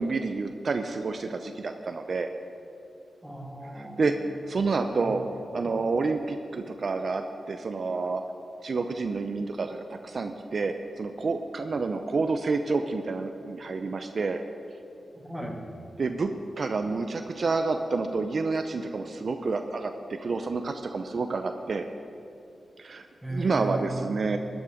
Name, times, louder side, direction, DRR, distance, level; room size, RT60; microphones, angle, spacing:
voice 1, 0.0-2.3 3.7-4.1 4.5-8.2 8.6-14.4 16.0-16.3 16.6-21.9 22.8-24.4, right 4 dB, 60° right, 6 dB, 0.6 m, -29 dB
voice 2, 3.2-4.2 5.0-5.2 5.5-5.7 15.1-15.6 23.2-24.2, right 1 dB, 10° right, 0 dB, 2.3 m, -36 dB
13.5 x 9.6 x 5.1 m, 2.6 s
supercardioid pair, 45°, 0 cm